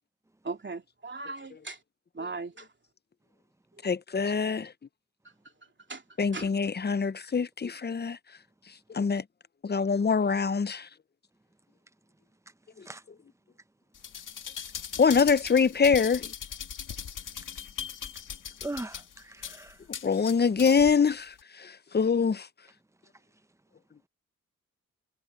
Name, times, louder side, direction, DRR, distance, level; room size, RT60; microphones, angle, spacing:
voice 1, 0.4-1.8 2.1-2.7 5.9-6.0 6.3-6.5, right 3 dB, 35° right, 2.8 m, -38 dB
voice 2, 3.8-4.7 6.2-8.2 8.9-9.2 9.6-10.9 15.0-16.3 20.0-22.5, left 5 dB, 30° left, 0.7 m, -24 dB
sound 1, 13.9-20.9 21.4-21.5, left 8 dB, 75° left, 2.1 m, -39 dB
voice 3, 18.6-19.8, right 2 dB, 10° right, 1.0 m, -39 dB
cardioid pair, 55°, 31 cm